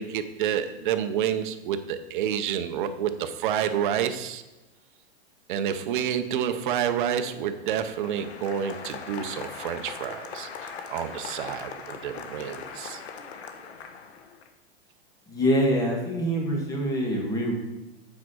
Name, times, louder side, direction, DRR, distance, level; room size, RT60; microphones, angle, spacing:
voice 1, 0.0-4.4 5.5-13.0, right 9 dB, 50° right, 9 dB, 0.7 m, -29 dB
Applause, 7.5-14.5, left 6 dB, 85° left, 1.2 m, -40 dB
voice 2, 15.3-17.5, equal, 10° left, 0 dB, 1.4 m, -25 dB
8.5 x 4.7 x 6.2 m, 1.0 s
supercardioid pair, 160°, 32 cm